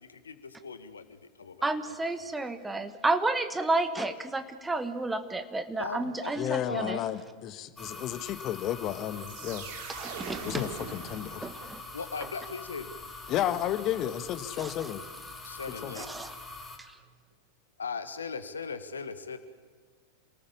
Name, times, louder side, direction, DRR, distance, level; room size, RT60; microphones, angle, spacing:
voice 1, 0.0-1.9 5.8-7.0 11.9-12.9 15.4-16.2 17.8-19.4, left 5 dB, 70° left, 1.5 m, -39 dB
voice 2, 1.6-7.0 10.0-10.6 11.4-11.8 14.6-14.9 15.9-16.3, right 2 dB, 10° right, 1.4 m, -31 dB
voice 3, 6.3-9.7 10.4-11.5 13.3-15.0 15.8-16.0, left 11 dB, 35° left, 1.3 m, -32 dB
sound 1, 7.8-16.8, left 3 dB, 10° left, 2.8 m, -44 dB
sound 2, 9.1-11.9, right 6 dB, 45° right, 2.8 m, -42 dB
27.5 x 19.0 x 7.2 m
figure-of-eight pair, 90°, 0 cm